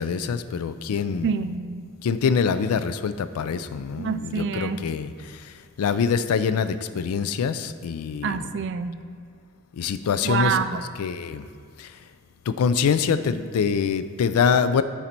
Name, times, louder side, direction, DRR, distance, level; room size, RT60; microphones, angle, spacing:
voice 1, 0.0-1.3 2.0-5.1 5.8-8.4 9.8-10.6 11.0-11.4 11.8-11.9 12.5-14.8, left 6 dB, 80° left, 13 dB, 0.4 m, -24 dB
voice 2, 1.2-1.9 4.0-4.8 8.2-9.0 10.2-10.8, right 6 dB, 55° right, 12 dB, 0.3 m, -27 dB
9.0 x 4.2 x 4.4 m, 2.2 s
head